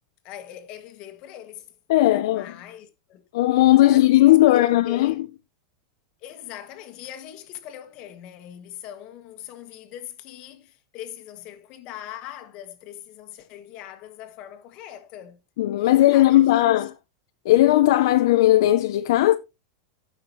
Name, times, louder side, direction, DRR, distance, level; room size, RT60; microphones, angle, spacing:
voice 1, 0.2-1.7 2.0-3.2 3.8-4.1 4.5-5.2 6.2-15.4 15.8-16.8, left 11 dB, 35° left, 1.5 m, -41 dB
voice 2, 1.9-2.5 3.3-5.3 15.6-16.9 17.4-19.4, left 15 dB, 65° left, 0.6 m, -17 dB
16.0 x 5.8 x 3.1 m
supercardioid pair, 170°, 3 cm